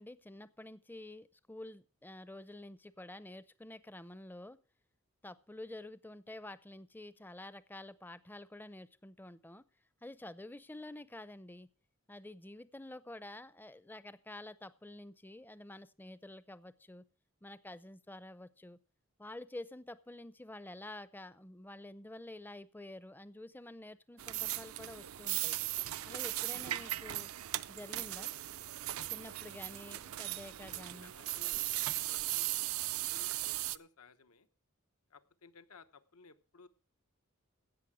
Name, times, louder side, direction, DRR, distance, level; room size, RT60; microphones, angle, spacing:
voice 1, 0.0-4.6 5.2-9.6 10.0-11.7 12.1-17.0 17.4-18.8 19.2-25.6 26.0-27.3 27.7-28.3 29.1-31.1, left 1 dB, 10° left, 16 dB, 0.5 m, -49 dB
sound 1, 24.2-33.8, right 15 dB, 70° right, 0.5 m, -38 dB
voice 2, 29.0-29.4 30.6-31.7 32.0-32.8 33.1-34.5 35.1-36.7, left 4 dB, 85° left, 10 dB, 1.0 m, -59 dB
16.5 x 6.6 x 6.2 m, 0.39 s
head